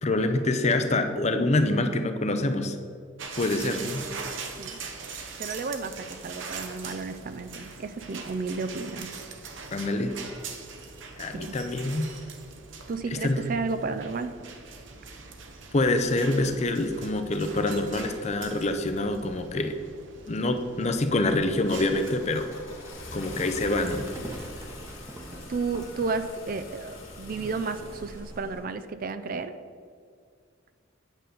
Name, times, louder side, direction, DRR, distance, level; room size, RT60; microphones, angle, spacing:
voice 1, 0.0-2.8 3.4-4.1 9.7-10.1 11.2-12.1 13.1-13.4 15.7-19.7 20.3-22.5 23.1-24.1, left 2 dB, 35° left, 7 dB, 0.6 m, -26 dB
sound 1, 3.2-22.1, right 4 dB, 70° right, 0.9 m, -42 dB
voice 2, 5.4-9.1 11.3-11.6 12.9-14.3 25.5-29.5, right 4 dB, 45° right, 11 dB, 0.4 m, -32 dB
Livestock farm animals working animals, 21.2-28.6, right 1 dB, 15° right, 0.9 m, -44 dB
Car / Engine starting, 21.7-28.7, left 2 dB, 85° left, 1.9 m, -45 dB
9.1 x 3.9 x 6.7 m, 2.2 s
head